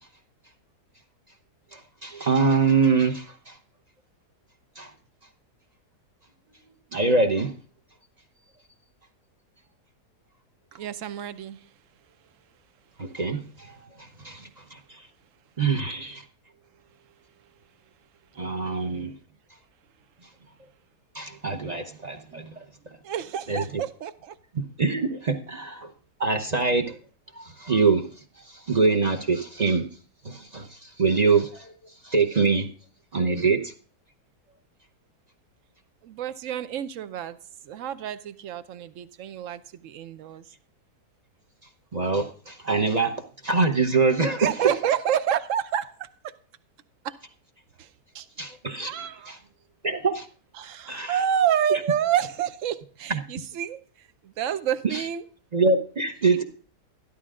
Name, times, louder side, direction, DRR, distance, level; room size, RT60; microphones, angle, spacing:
voice 1, 1.7-3.6 4.8-4.9 6.9-7.5 13.0-15.0 15.6-16.2 18.4-19.1 21.1-22.6 23.5-23.6 24.5-25.9 26.2-27.0 27.3-28.0 28.5-29.8 30.2-31.7 32.0-32.7 33.1-33.7 41.9-43.2 43.4-44.5 48.4-49.4 49.8-50.3 50.9-51.2 53.1-53.2 54.9-55.0 55.5-56.4, right 4 dB, 35° right, 0.7 m, -24 dB
voice 2, 10.7-11.7 22.3-22.4 23.0-24.4 36.0-37.4 37.6-40.4 44.4-46.1 47.0-47.2 47.8-48.3 48.8-49.4 50.5-55.2 56.3-56.4, right 9 dB, 60° right, 1.0 m, -29 dB
13.0 x 11.5 x 3.7 m
omnidirectional pair, 1.7 m